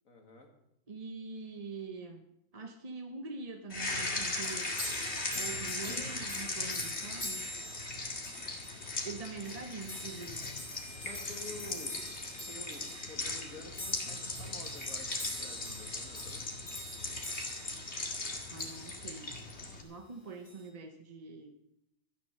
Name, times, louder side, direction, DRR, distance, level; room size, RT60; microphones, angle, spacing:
voice 1, 0.0-0.5 11.0-12.0 12.5-16.5, left 2 dB, 75° left, 3 dB, 2.4 m, -49 dB
voice 2, 0.9-2.2 2.5-4.7 5.3-7.4 9.0-10.5 18.5-19.3 19.8-21.5, right 4 dB, 30° right, 5 dB, 0.8 m, -44 dB
sound 1, 3.7-19.8, left 2 dB, 50° left, 2.4 m, -38 dB
sound 2, 4.2-19.2 20.5-20.7, left 1 dB, 90° left, 3.5 m, -45 dB
13.5 x 10.0 x 6.5 m, 0.82 s
omnidirectional pair, 1.4 m